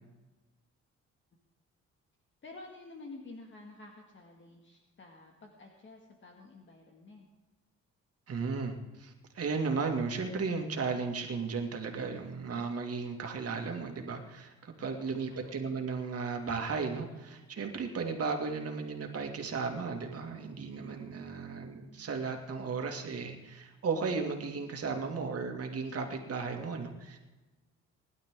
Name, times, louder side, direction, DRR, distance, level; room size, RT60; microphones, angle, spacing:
voice 1, 2.4-7.3 15.3-15.6, left 2 dB, 40° left, 1 dB, 2.1 m, -50 dB
voice 2, 8.3-27.2, right 4 dB, 50° right, 3 dB, 2.4 m, -35 dB
20.0 x 11.5 x 3.8 m, 1.1 s
cardioid pair, 90°, 30 cm